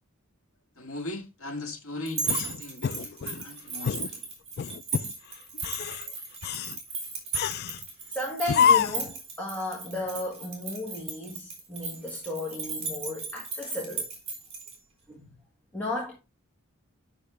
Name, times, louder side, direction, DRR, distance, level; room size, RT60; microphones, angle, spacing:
voice 1, 0.8-4.3, left 2 dB, 80° left, 1.8 m, -39 dB
sound 1, 2.1-14.7, right 4 dB, 30° right, 3.6 m, -36 dB
sound 2, 2.2-3.4 3.8-4.1 4.6-5.1 5.5-6.0 6.4-6.8 7.3-7.8 8.5-9.1, left 7 dB, 45° left, 0.3 m, -26 dB
voice 2, 8.1-14.1 15.1-15.2 15.7-16.2, left 2 dB, 10° left, 1.6 m, -34 dB
10.0 x 6.3 x 3.3 m
head